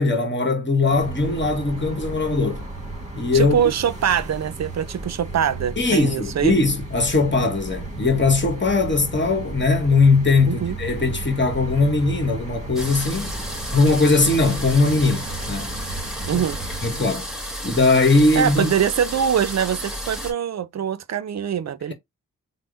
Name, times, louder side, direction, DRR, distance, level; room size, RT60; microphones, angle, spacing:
voice 1, 0.0-2.6 3.2-3.6 5.8-13.4 13.7-15.8 16.3-16.4 16.8-17.2 17.6-18.7, left 3 dB, 35° left, 1.3 m, -20 dB
sound 1, 0.9-17.0, right 2 dB, 20° right, 1.4 m, -34 dB
voice 2, 3.3-6.6 10.5-10.8 16.3-16.6 18.4-21.9, right 8 dB, 55° right, 0.5 m, -23 dB
sound 2, 12.8-20.3, equal, ahead, 1.5 m, -32 dB
3.4 x 2.1 x 3.9 m
cardioid pair, 45°, 33 cm